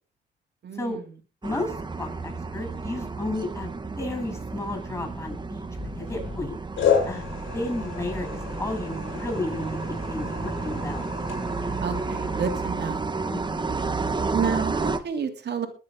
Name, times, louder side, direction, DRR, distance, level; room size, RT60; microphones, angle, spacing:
voice 1, 0.6-1.0 11.8-13.2 14.3-15.7, right 6 dB, 55° right, 5 dB, 2.9 m, -30 dB
voice 2, 1.4-5.6 5.9-6.6 7.1-7.2 7.5-11.1 13.3-13.7, left 2 dB, 15° left, 2 dB, 8.0 m, -33 dB
sound 1, 1.4-15.0, right 3 dB, 20° right, 1.5 m, -31 dB
sound 2, 5.8-6.4 6.8-12.7, left 7 dB, 75° left, 5.9 m, -31 dB
22.0 x 7.5 x 3.8 m, 0.36 s
cardioid pair, 90°, 20 cm